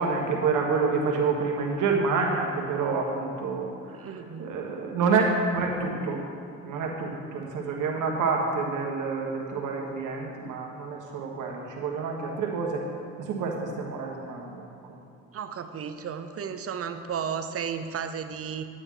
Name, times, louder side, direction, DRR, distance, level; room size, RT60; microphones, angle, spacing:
voice 1, 0.0-4.1 4.4-6.2 6.6-12.8 13.2-15.0, right 4 dB, 85° right, 0 dB, 1.6 m, -28 dB
voice 2, 3.9-4.6 15.3-18.6, right 7 dB, 50° right, 9 dB, 0.7 m, -34 dB
10.0 x 9.0 x 3.9 m, 2.5 s
cardioid pair, 90°, 30 cm